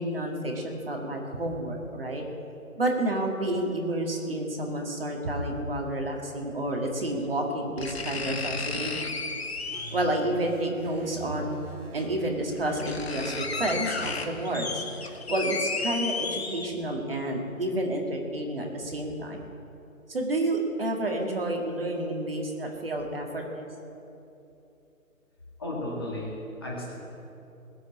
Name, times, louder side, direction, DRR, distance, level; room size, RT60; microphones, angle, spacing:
voice 1, 0.0-2.2 2.8-9.1 9.9-11.7 11.9-19.4 20.1-23.7, right 1 dB, 40° right, 1 dB, 2.0 m, -30 dB
sound 1, 5.4-5.5 6.9-7.0 7.8-10.2 11.5-11.6 12.2-12.3 12.6-17.0 17.4-17.5, left 4 dB, 45° left, 1.3 m, -33 dB
sound 2, 9.7-15.1, right 2 dB, 80° right, 2.2 m, -43 dB
voice 2, 25.6-26.9, left 1 dB, 15° left, -6 dB, 1.7 m, -34 dB
19.5 x 7.7 x 8.6 m, 2.9 s
hypercardioid pair, 180°, 43 cm